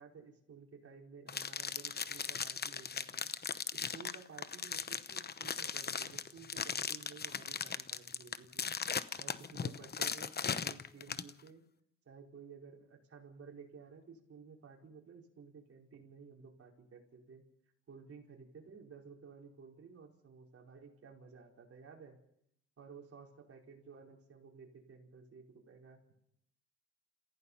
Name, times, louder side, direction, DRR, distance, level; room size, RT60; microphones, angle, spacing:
voice 1, 0.0-8.7 9.1-11.6 12.0-17.4 17.9-22.2 22.8-26.0, right 5 dB, 50° right, 0 dB, 5.0 m, -54 dB
sound 1, 1.3-11.3, left 6 dB, 35° left, 0.9 m, -38 dB
29.5 x 16.0 x 5.7 m, 0.74 s
cardioid pair, 90°, 30 cm